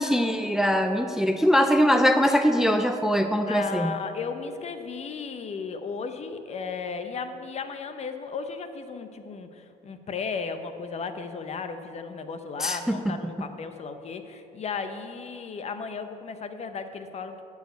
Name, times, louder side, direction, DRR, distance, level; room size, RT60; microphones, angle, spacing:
voice 1, 0.0-4.0 12.6-13.3, equal, 5° right, 7 dB, 0.4 m, -22 dB
voice 2, 3.5-17.4, left 5 dB, 40° left, 9 dB, 0.8 m, -35 dB
11.0 x 4.8 x 8.0 m, 2.7 s
cardioid pair, 110°, 17 cm